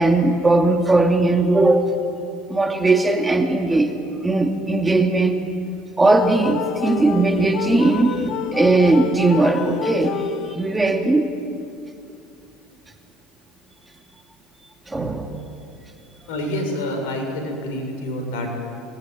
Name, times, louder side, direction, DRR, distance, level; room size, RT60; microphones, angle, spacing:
voice 1, 0.0-1.9 2.5-3.9 4.2-5.4 6.0-11.3 14.9-15.4, right 2 dB, 15° right, 4 dB, 2.7 m, -18 dB
sound 1, 6.0-10.9, left 9 dB, 55° left, 1.3 m, -29 dB
voice 2, 16.3-18.5, left 1 dB, 75° left, 3 dB, 7.1 m, -27 dB
26.0 x 21.0 x 9.6 m, 2.6 s
hypercardioid pair, 85°, 0 cm